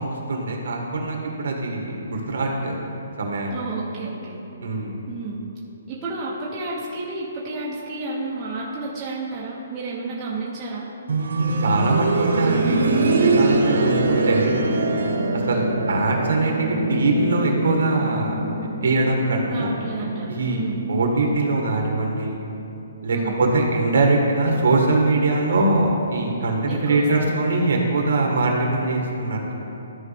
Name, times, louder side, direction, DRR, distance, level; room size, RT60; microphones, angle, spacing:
voice 1, 0.0-2.8 3.2-3.5 4.6-5.0 11.4-14.6 15.5-18.4 18.8-19.7 20.3-22.3 23.0-29.5, right 2 dB, 55° right, 0 dB, 1.5 m, -22 dB
voice 2, 3.5-4.4 5.1-5.4 5.9-10.9 13.5-13.8 19.5-20.8 23.1-23.4 26.7-27.4, right 3 dB, 10° right, -7 dB, 0.7 m, -31 dB
sound 1, 11.1-21.9 23.2-23.3, right 2 dB, 70° right, 1.2 m, -23 dB
13.5 x 4.9 x 3.4 m, 2.9 s
hypercardioid pair, 180°, 0 cm